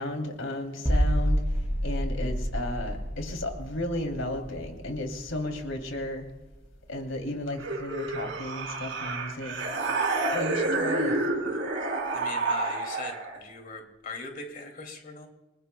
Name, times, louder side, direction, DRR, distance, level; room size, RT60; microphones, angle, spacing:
voice 1, 0.0-1.4 1.8-6.2 6.9-9.5 10.3-11.2, left 1 dB, 85° left, 3 dB, 3.0 m, -34 dB
sound 1, 0.9-6.6 6.8-7.1, equal, 10° right, 4.4 m, -29 dB
sound 2, 7.6-13.4, right 2 dB, 65° right, 3.1 m, -29 dB
voice 2, 11.1-11.5 12.1-15.3, left 3 dB, 45° left, 3 dB, 2.6 m, -41 dB
29.5 x 19.0 x 2.3 m, 1.1 s
head